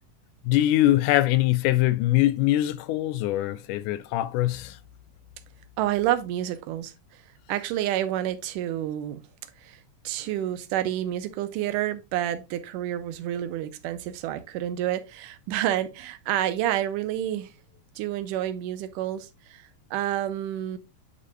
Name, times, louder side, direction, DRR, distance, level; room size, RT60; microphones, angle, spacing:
voice 1, 0.4-4.8, left 15 dB, 80° left, 2.0 m, -23 dB
voice 2, 5.8-6.9 7.5-9.2 9.6-9.8 10.0-17.5 18.0-20.8, right 12 dB, 90° right, 2.2 m, -29 dB
10.0 x 4.9 x 2.2 m
omnidirectional pair, 3.6 m